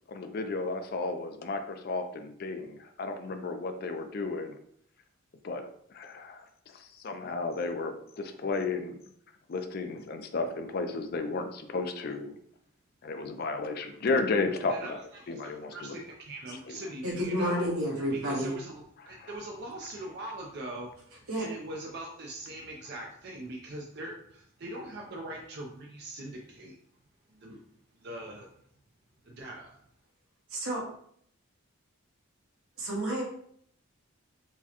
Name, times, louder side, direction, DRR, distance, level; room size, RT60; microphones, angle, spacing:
voice 1, 0.1-4.6 5.4-5.7 5.9-9.0 9.5-12.4 13.0-15.0 15.3-16.0 16.7-16.8 19.2-19.3, left 3 dB, 45° left, 7 dB, 0.4 m, -33 dB
voice 2, 14.7-17.7 18.1-26.8 27.3-27.6 28.0-28.5 29.2-29.8, right 1 dB, 50° right, -1 dB, 0.4 m, -42 dB
voice 3, 17.0-18.5 21.3-21.4 30.5-30.8 32.8-33.2, equal, 75° right, -3 dB, 1.2 m, -30 dB
4.6 x 2.2 x 2.8 m, 0.66 s
head